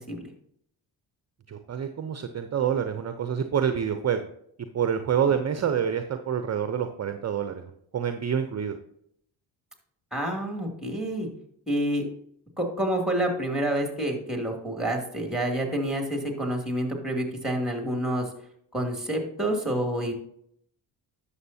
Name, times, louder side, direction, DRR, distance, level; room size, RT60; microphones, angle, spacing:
voice 1, 1.5-4.3 4.7-8.8, right 8 dB, 35° right, 8 dB, 0.7 m, -27 dB
voice 2, 10.1-11.3 11.7-12.1 12.6-18.3 18.7-20.1, right 1 dB, ahead, 3 dB, 2.5 m, -28 dB
11.0 x 7.1 x 2.8 m, 0.69 s
supercardioid pair, 60°, 45 cm